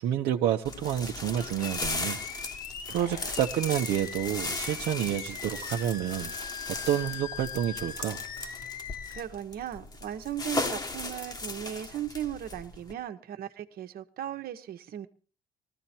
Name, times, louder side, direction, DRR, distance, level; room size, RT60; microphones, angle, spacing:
voice 1, 0.0-2.2 2.9-6.3 6.9-8.2, right 11 dB, 80° right, 0 dB, 1.0 m, -29 dB
sound 1, 0.6-12.9, left 3 dB, 25° left, 1.2 m, -37 dB
Animal, 1.2-9.2, left 8 dB, 60° left, 1.2 m, -41 dB
voice 2, 9.1-15.1, right 11 dB, 60° right, 7 dB, 1.3 m, -37 dB
20.0 x 14.0 x 4.5 m, 0.38 s
cardioid pair, 110°, 17 cm